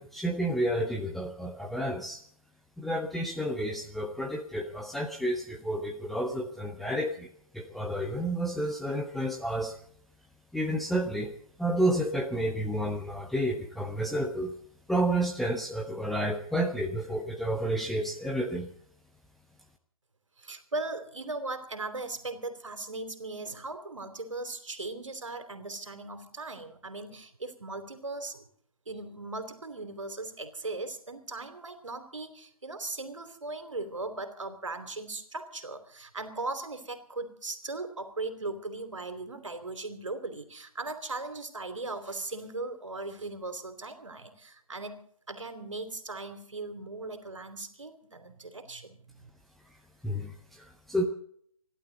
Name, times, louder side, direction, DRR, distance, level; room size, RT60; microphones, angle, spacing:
voice 1, 0.0-2.2 2.8-7.3 7.5-9.7 10.5-11.3 11.6-14.5 14.9-18.7 50.0-51.0, right 1 dB, ahead, 0 dB, 0.5 m, -30 dB
voice 2, 20.4-28.4 28.9-45.0 45.3-49.3, right 2 dB, 65° right, 8 dB, 3.0 m, -38 dB
28.5 x 12.0 x 3.9 m, 0.63 s
figure-of-eight pair, 140°, 17 cm